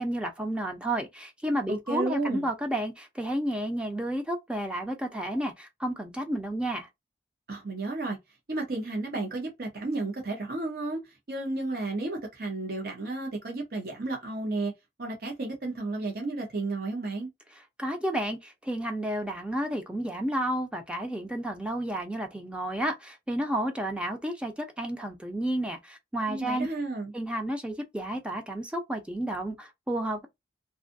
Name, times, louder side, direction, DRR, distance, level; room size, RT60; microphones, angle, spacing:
voice 1, 0.0-6.9 17.8-26.7 27.1-30.3, right 1 dB, 5° right, 0.5 m, -31 dB
voice 2, 1.7-2.5 7.5-8.2 8.5-14.7 15.0-17.3 26.3-27.1, right 2 dB, 55° right, 0.8 m, -32 dB
2.6 x 2.4 x 2.5 m
head